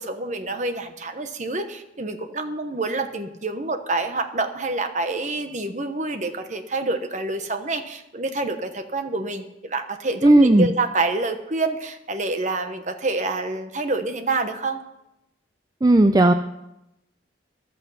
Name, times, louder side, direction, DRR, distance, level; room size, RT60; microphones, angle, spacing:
voice 1, 0.0-14.8, right 3 dB, 40° right, 8 dB, 1.1 m, -27 dB
voice 2, 10.2-10.7 15.8-16.3, right 1 dB, 20° right, 8 dB, 0.4 m, -14 dB
14.0 x 12.0 x 5.6 m, 0.91 s
head